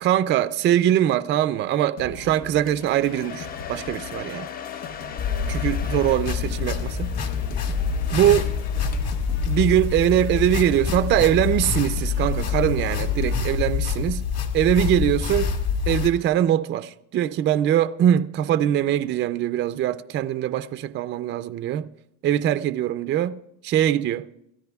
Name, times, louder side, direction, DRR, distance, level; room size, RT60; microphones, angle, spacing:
voice 1, 0.0-4.5 5.5-7.1 8.1-8.5 9.5-14.3 14.5-15.5 15.9-21.9 22.2-23.4 23.6-24.3, right 11 dB, 30° right, 0.4 m, -22 dB
sound 1, 2.0-13.4, left 5 dB, 80° left, 1.2 m, -40 dB
Domestic sounds home sounds, 2.7-9.4, left 8 dB, 25° left, 0.5 m, -39 dB
sound 2, 5.2-16.1, left 6 dB, 45° left, 1.9 m, -26 dB
27.0 x 14.0 x 2.3 m
supercardioid pair, 125°, 37 cm